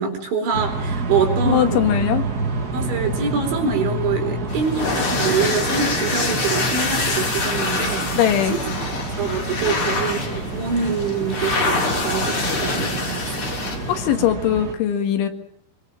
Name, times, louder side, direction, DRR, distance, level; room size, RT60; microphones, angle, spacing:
voice 1, 0.0-1.8 2.7-8.2 8.5-8.6 9.2-13.6, right 5 dB, 75° right, 4 dB, 6.7 m, -25 dB
sound 1, 0.5-14.7, right 3 dB, 55° right, 1.0 m, -28 dB
voice 2, 1.5-2.2 8.2-8.6 9.6-9.8 13.9-15.3, left 10 dB, 85° left, 6 dB, 4.3 m, -20 dB
sound 2, 4.5-14.1, left 3 dB, 30° left, 3.6 m, -25 dB
24.0 x 24.0 x 7.4 m, 0.69 s
omnidirectional pair, 5.3 m